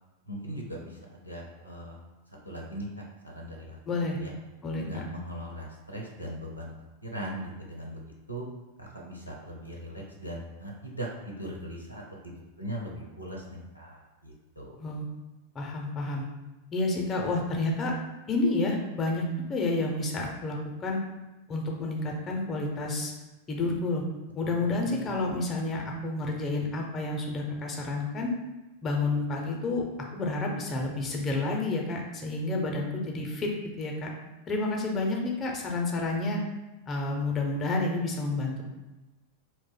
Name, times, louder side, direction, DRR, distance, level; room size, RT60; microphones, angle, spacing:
voice 1, 0.3-2.0 2.4-3.8 4.1-4.3 4.8-6.7 7.0-8.0 8.3-8.4 8.8-14.8 24.4-25.1, equal, 90° left, -2 dB, 0.5 m, -40 dB
voice 2, 3.9-4.2 4.6-5.0 14.8-15.1 15.5-16.2 16.7-17.9 18.3-19.2 19.5-21.0 21.5-23.1 23.5-24.0 24.3-28.3 28.8-29.9 30.1-33.5 33.8-34.1 34.5-36.4 36.9-38.6, left 2 dB, 25° left, 0 dB, 0.5 m, -30 dB
2.5 x 2.1 x 3.9 m, 1.1 s
figure-of-eight pair, 90°, 0 cm